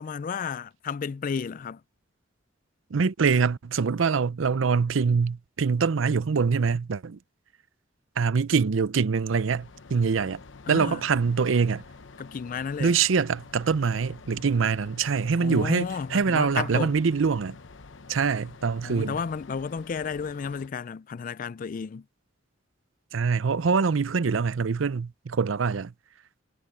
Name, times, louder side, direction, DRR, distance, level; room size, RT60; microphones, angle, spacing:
voice 1, 0.0-1.8 10.7-11.0 12.2-12.9 15.4-16.9 18.8-22.1, left 6 dB, 45° left, 0.3 m, -32 dB
voice 2, 2.9-7.2 8.2-10.4 10.7-11.8 12.8-17.6 18.1-19.2 23.1-25.9, right 5 dB, 85° right, 0.6 m, -24 dB
sound 1, 9.2-20.7, left 4 dB, 70° left, 0.9 m, -48 dB
head